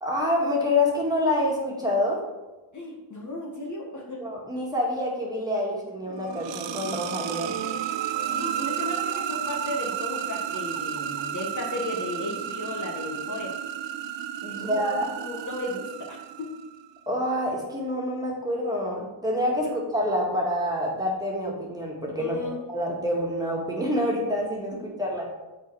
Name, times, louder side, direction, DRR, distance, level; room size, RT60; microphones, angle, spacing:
voice 1, 0.0-2.2 4.2-7.6 14.4-15.1 17.1-25.3, left 1 dB, 10° right, -3 dB, 1.9 m, -27 dB
voice 2, 2.7-4.2 8.3-13.5 14.6-16.5 22.2-22.6, left 2 dB, 40° left, -1 dB, 1.4 m, -35 dB
sound 1, 6.1-16.8, right 10 dB, 70° right, 0.5 m, -32 dB
6.9 x 4.2 x 4.6 m, 1.1 s
cardioid pair, 80°, 46 cm